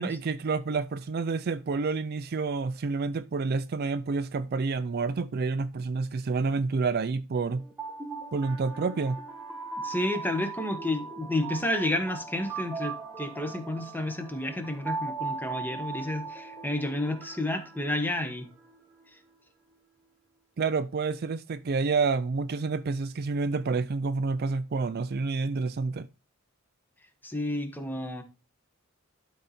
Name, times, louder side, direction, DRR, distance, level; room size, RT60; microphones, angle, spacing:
voice 1, 0.0-7.7 8.3-9.2 20.6-26.1, right 4 dB, 50° right, 0.4 m, -29 dB
sound 1, 7.6-18.7, right 4 dB, 10° right, 1.6 m, -39 dB
voice 2, 9.8-18.5 27.2-28.2, left 1 dB, 10° left, 1.2 m, -31 dB
12.0 x 4.1 x 4.2 m
head